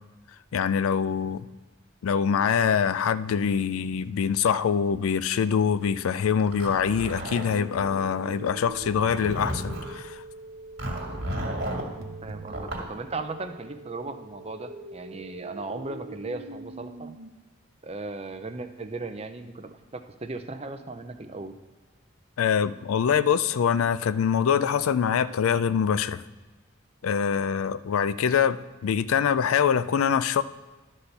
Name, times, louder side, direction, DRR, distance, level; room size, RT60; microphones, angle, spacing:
voice 1, 0.5-1.5 2.0-10.2 22.4-26.2 27.0-30.4, left 7 dB, 90° left, 15 dB, 0.4 m, -24 dB
Zipper (clothing), 6.4-7.9 8.7-10.0 10.8-11.9 12.5-12.9, right 1 dB, 50° right, 1.9 m, -33 dB
sound 1, 7.3-17.3, right 2 dB, 85° right, 0.9 m, -43 dB
voice 2, 12.2-17.1 17.8-21.5, right 3 dB, 30° right, 7 dB, 0.6 m, -37 dB
11.5 x 4.2 x 6.7 m, 1.2 s
head